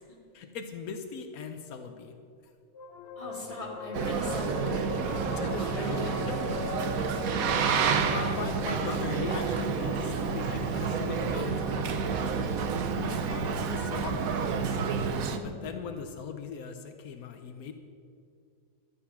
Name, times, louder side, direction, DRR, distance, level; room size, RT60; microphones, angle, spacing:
voice 1, 0.3-2.1 5.3-5.9 6.4-6.9 7.6-12.7 13.0-14.8 15.4-17.7, left 6 dB, 85° left, 6 dB, 1.3 m, -40 dB
sound 1, 2.7-15.6, left 6 dB, 55° left, 0.8 m, -42 dB
voice 2, 3.2-6.2 15.2-15.6, equal, 25° left, -2 dB, 2.6 m, -39 dB
Boat Water vehicle, 3.9-15.4, right 6 dB, 80° right, 1.2 m, -29 dB
sound 2, 11.8-14.1, right 6 dB, 55° right, 1.0 m, -46 dB
12.5 x 8.6 x 5.7 m, 2.3 s
omnidirectional pair, 1.5 m